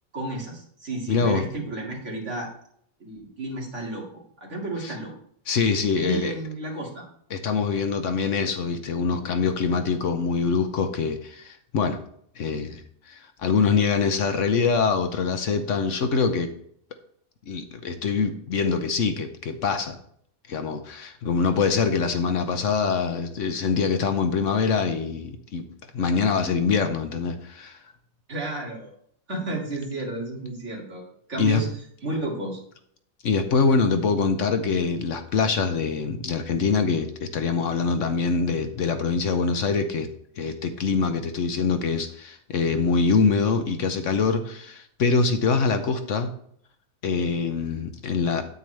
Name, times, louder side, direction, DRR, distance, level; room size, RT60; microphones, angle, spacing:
voice 1, 0.1-2.5 3.0-4.1 4.4-5.1 5.9-7.0 28.3-28.9 29.3-31.7 32.0-32.6, right 2 dB, 55° right, -2 dB, 2.6 m, -32 dB
voice 2, 1.1-1.4 4.8-4.9 5.5-6.3 7.3-12.0 12.4-12.8 13.1-16.5 17.5-20.0 20.5-25.7 25.9-27.8 31.4-31.6 33.2-40.1 40.4-46.3 47.0-48.4, left 5 dB, 65° left, 8 dB, 1.1 m, -24 dB
9.4 x 8.7 x 3.3 m, 0.65 s
omnidirectional pair, 1.5 m